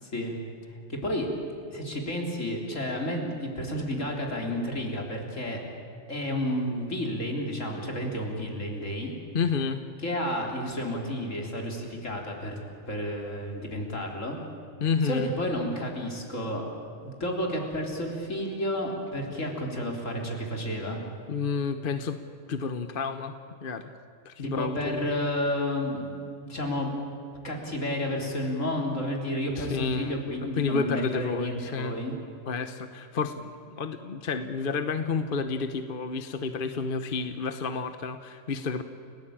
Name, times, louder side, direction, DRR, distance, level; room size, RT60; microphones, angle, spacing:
voice 1, 0.9-1.3 1.7-5.6 6.1-9.1 10.0-12.6 12.9-14.4 15.0-16.6 17.0-21.0 24.4-26.9 27.4-32.1, left 1 dB, 75° left, 1 dB, 4.1 m, -31 dB
voice 2, 9.3-9.8 14.8-15.3 21.3-22.2 22.5-23.9 24.2-25.1 29.6-30.2 30.6-32.0 32.5-38.8, left 5 dB, 45° left, 9 dB, 1.1 m, -30 dB
29.5 x 17.5 x 8.8 m, 2.5 s
omnidirectional pair, 1.3 m